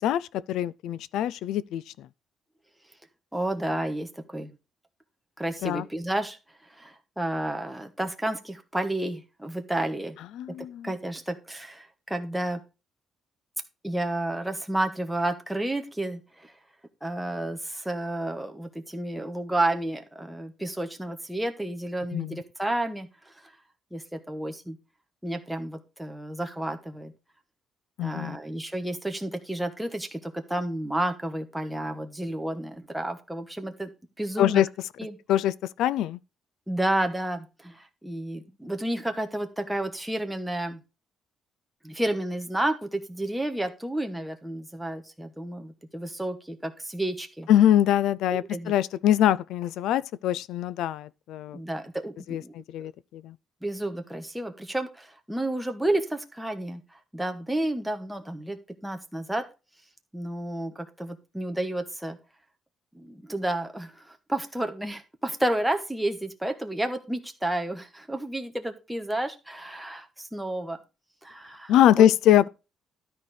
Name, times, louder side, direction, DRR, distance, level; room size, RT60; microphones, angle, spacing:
voice 1, 0.0-2.1 5.6-5.9 10.4-10.9 22.1-22.4 28.0-28.4 34.4-34.7 35.3-36.2 47.5-51.6 52.3-53.4 71.7-72.5, left 11 dB, 90° left, 0.4 m, -23 dB
voice 2, 3.3-4.5 5.4-6.4 6.7-10.2 10.8-12.6 13.8-16.5 17.0-23.5 23.9-24.8 25.2-27.1 28.0-33.9 34.2-34.6 35.0-35.2 36.7-40.8 41.8-47.5 48.3-48.7 51.5-52.5 53.6-56.8 57.1-59.4 60.1-62.2 62.9-70.8 71.2-72.1, right 1 dB, 5° right, 1.2 m, -31 dB
12.5 x 4.4 x 4.9 m
cardioid pair, 155°, 0 cm